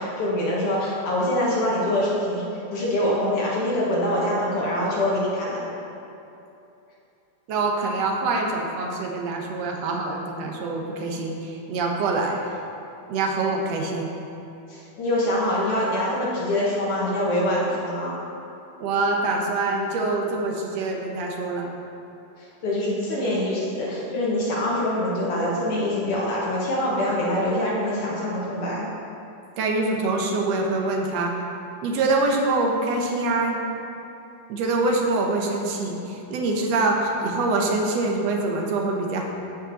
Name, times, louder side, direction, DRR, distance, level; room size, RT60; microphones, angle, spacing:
voice 1, 0.0-2.5 2.7-5.6 14.7-18.2 22.4-28.9, left 1 dB, 55° left, -5 dB, 2.0 m, -24 dB
voice 2, 7.5-12.5 13.1-14.1 18.8-21.7 29.6-31.3 31.8-33.6 34.5-39.2, right 3 dB, 70° right, 1 dB, 1.9 m, -25 dB
14.0 x 5.2 x 4.0 m, 2.8 s
omnidirectional pair, 3.4 m